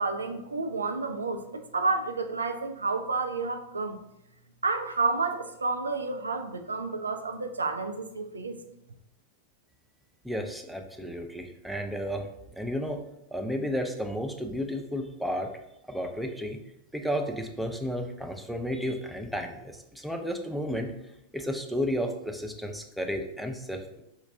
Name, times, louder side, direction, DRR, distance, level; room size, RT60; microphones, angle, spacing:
voice 1, 0.0-4.0 4.6-8.6, right 3 dB, 75° right, 6 dB, 0.3 m, -30 dB
voice 2, 10.2-12.3 12.6-13.0 13.3-15.5 15.9-16.6 16.9-20.9 21.3-24.0, equal, ahead, 4 dB, 0.4 m, -32 dB
4.4 x 2.3 x 3.4 m, 0.85 s
figure-of-eight pair, 90°, 0 cm